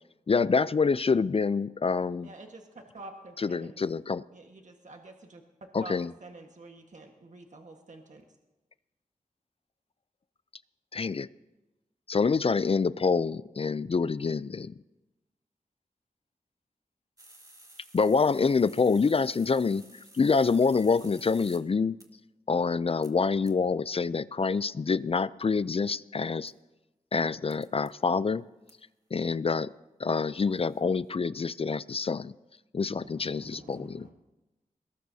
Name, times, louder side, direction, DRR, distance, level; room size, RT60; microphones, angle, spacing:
voice 1, 0.3-2.3 3.4-4.2 5.7-6.1 10.9-11.3 12.1-14.7 17.9-19.8 20.1-22.0 22.5-26.5 27.1-28.4 29.1-29.7 30.0-32.3 32.7-34.1, left 5 dB, 40° left, 18 dB, 0.4 m, -26 dB
voice 2, 2.2-3.8 4.3-5.4 5.8-5.9 6.2-8.3, right 2 dB, 55° right, 3 dB, 1.5 m, -47 dB
sound 1, 17.2-21.6 22.0-22.1 23.0-23.1 23.5-23.6 26.5-26.6 27.5-27.9 28.7-28.8 30.4-30.8, right 1 dB, 25° right, 2.3 m, -53 dB
voice 3, 32.9-34.1, right 1 dB, 80° right, -2 dB, 3.7 m, -51 dB
22.0 x 18.5 x 2.8 m, 1.1 s
cardioid pair, 50°, 15 cm